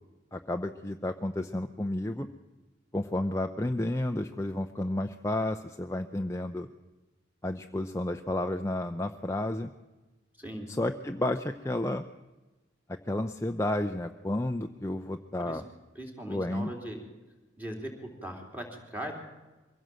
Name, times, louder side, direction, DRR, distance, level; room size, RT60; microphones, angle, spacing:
voice 1, 0.3-2.3 2.9-6.7 7.4-9.7 10.7-12.0 12.9-15.7 16.3-16.7, left 1 dB, 15° left, 6 dB, 0.6 m, -31 dB
voice 2, 16.0-17.0 17.6-17.9 18.2-19.2, right 1 dB, 10° right, 2 dB, 3.4 m, -39 dB
23.0 x 16.5 x 7.7 m, 1.2 s
head